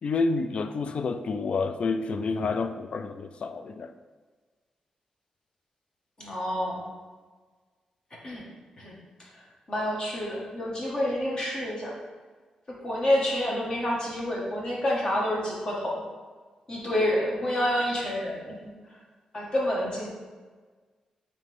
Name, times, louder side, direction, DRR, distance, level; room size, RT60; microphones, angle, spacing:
voice 1, 0.0-3.9, left 4 dB, 55° left, 9 dB, 0.4 m, -29 dB
voice 2, 6.2-6.9 8.2-8.4 8.8-8.9 9.7-12.0 12.8-16.0 16.7-18.7 19.3-20.1, left 1 dB, 40° left, -3 dB, 1.8 m, -28 dB
8.8 x 3.3 x 3.7 m, 1.4 s
cardioid pair, 95°, 2 cm